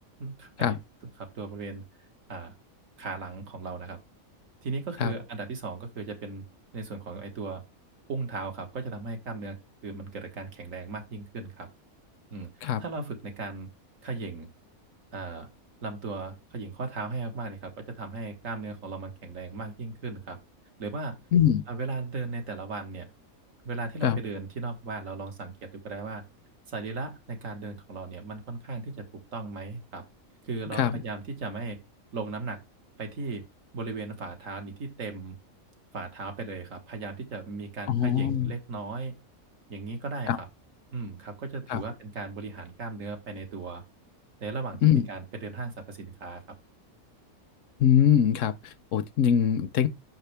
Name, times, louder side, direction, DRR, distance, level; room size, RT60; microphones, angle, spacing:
voice 1, 0.2-0.8 1.2-1.8 2.3-2.5 3.0-4.0 4.6-6.4 6.7-7.6 8.1-9.6 9.8-11.7 12.3-13.7 14.0-14.5 15.1-15.5 15.8-20.4 20.8-21.2 21.7-23.1 23.6-26.2 26.7-29.0 29.3-30.0 30.4-31.8 32.1-32.6 33.0-33.4 33.7-35.4 35.9-39.1 39.7-40.5 40.9-43.8 44.4-46.4, right 3 dB, 70° right, 1.9 m, -36 dB
voice 2, 21.3-21.6 24.0-24.2 30.7-31.0 37.9-38.5 40.3-40.4 41.7-41.8 44.8-45.1 47.8-49.9, left 9 dB, 75° left, 0.9 m, -23 dB
6.2 x 5.8 x 3.3 m
omnidirectional pair, 1.4 m